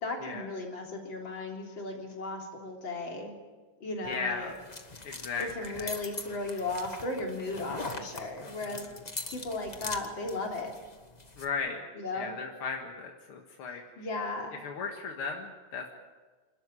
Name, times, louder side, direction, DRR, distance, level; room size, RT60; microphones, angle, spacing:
voice 1, 0.0-3.4 3.8-4.5 5.4-8.9 9.3-10.7 11.9-12.3 14.0-14.6, left 2 dB, 60° left, 1 dB, 4.2 m, -36 dB
sound 1, 4.0-11.5, left 3 dB, 20° left, 1.4 m, -42 dB
voice 2, 4.1-4.5 5.0-5.9 8.4-8.8 11.4-11.8 12.1-13.8 14.6-15.9, left 5 dB, 90° left, 2 dB, 2.6 m, -36 dB
28.0 x 13.0 x 9.8 m, 1.3 s
omnidirectional pair, 2.3 m